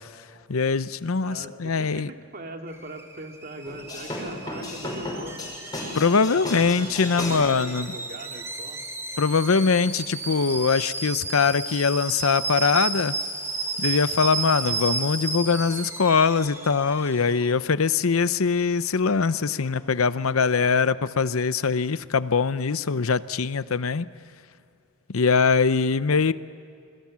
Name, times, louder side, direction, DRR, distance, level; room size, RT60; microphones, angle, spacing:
voice 1, 0.5-2.1 5.9-7.9 9.2-13.2 13.8-24.1 25.1-26.3, left 5 dB, 80° left, 15 dB, 0.7 m, -22 dB
voice 2, 1.2-5.4 6.3-8.9 20.3-20.6 26.1-26.3, right 1 dB, 45° right, 3 dB, 2.5 m, -41 dB
Alarm / Boiling, 2.7-17.5, right 3 dB, 15° right, 2.2 m, -33 dB
sound 1, 3.6-10.4 11.2-11.8 12.1-12.3 12.6-18.6 18.9-21.4, left 1 dB, 20° left, 6.3 m, -39 dB
27.5 x 22.5 x 7.5 m, 2.5 s
head